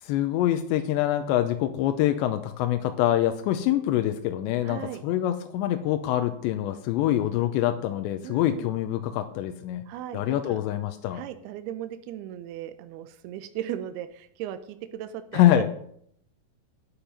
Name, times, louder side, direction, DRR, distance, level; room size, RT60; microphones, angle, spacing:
voice 1, 0.0-9.8 10.1-11.2 15.3-15.7, left 12 dB, 90° left, 7 dB, 3.0 m, -25 dB
voice 2, 4.6-5.0 8.2-8.7 9.9-10.6 11.1-15.7, right 11 dB, 80° right, 10 dB, 2.4 m, -37 dB
11.5 x 9.0 x 5.3 m, 0.66 s
omnidirectional pair, 5.1 m